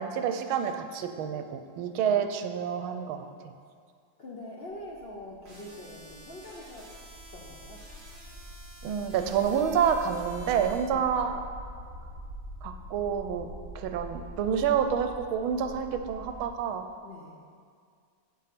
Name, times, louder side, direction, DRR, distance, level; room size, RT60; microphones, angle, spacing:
voice 1, 0.0-3.5 8.8-11.4 12.6-13.5 13.7-16.8, right 7 dB, 80° right, 7 dB, 1.5 m, -28 dB
voice 2, 4.2-6.9 7.3-7.9 10.9-11.1 17.0-17.4, left 1 dB, 55° left, -4 dB, 0.7 m, -44 dB
sound 1, 4.7-16.5, equal, 70° left, 3.6 m, -45 dB
sound 2, 5.5-10.8, right 1 dB, 50° right, 3.5 m, -51 dB
7.9 x 7.7 x 5.9 m, 2.2 s
omnidirectional pair, 2.2 m